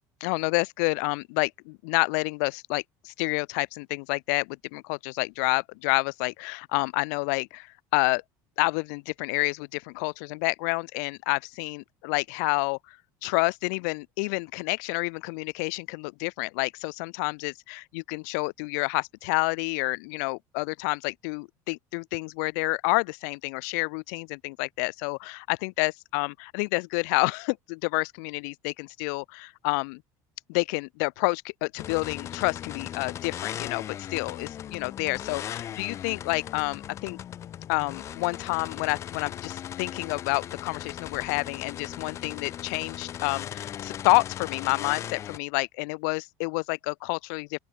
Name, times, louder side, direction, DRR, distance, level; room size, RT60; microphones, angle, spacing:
voice 1, 0.2-8.2 8.6-13.0 13.2-30.0 30.5-37.2 37.7-47.6, left 34 dB, 75° left, 2.1 m, -29 dB
sound 1, 31.8-45.4, left 10 dB, 30° left, 6.3 m, -38 dB
open air
cardioid pair, 170°, 9 cm